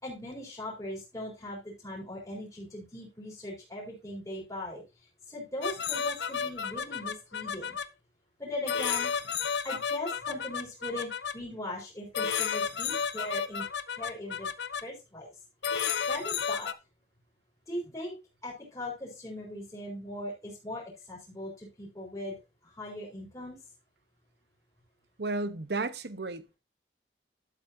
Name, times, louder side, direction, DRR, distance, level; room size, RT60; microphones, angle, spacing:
voice 1, 0.0-4.8 5.3-7.8 8.4-9.1 9.6-13.7 14.0-14.5 14.8-15.3 16.1-16.7 17.7-18.1 18.4-22.4 22.6-23.6, left 1 dB, 20° left, 4.2 m, -39 dB
sound 1, 5.6-7.8 8.7-11.3 12.1-14.8 15.6-16.7, left 7 dB, 80° left, 0.7 m, -32 dB
voice 2, 25.2-26.6, right 3 dB, 70° right, 0.9 m, -33 dB
11.5 x 8.3 x 2.7 m
head